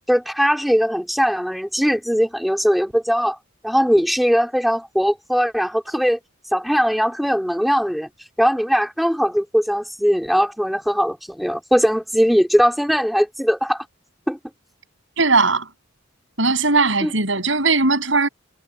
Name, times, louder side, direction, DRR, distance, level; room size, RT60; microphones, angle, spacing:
voice 1, 0.1-3.4 3.6-6.2 6.5-8.1 8.4-13.8 14.3-14.4 17.0-17.1, equal, ahead, 4.0 m, -20 dB
voice 2, 15.2-15.7 16.4-18.3, right 3 dB, 70° right, 7.5 m, -18 dB
head